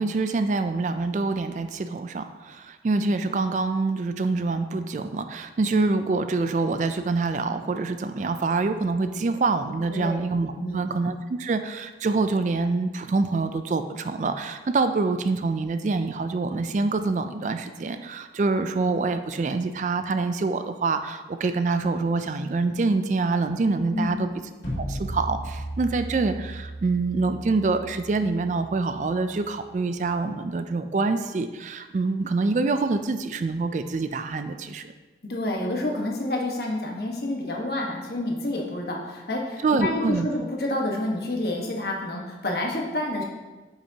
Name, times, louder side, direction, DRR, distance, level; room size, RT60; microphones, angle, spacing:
voice 1, 0.0-24.3 24.8-34.9 39.6-40.3, right 3 dB, 45° right, 9 dB, 0.3 m, -26 dB
voice 2, 23.9-24.3 35.2-43.2, left 1 dB, 60° left, -1 dB, 1.3 m, -29 dB
sound 1, 24.6-29.7, right 1 dB, 85° left, 2.3 m, -36 dB
8.7 x 5.8 x 2.8 m, 1.2 s
head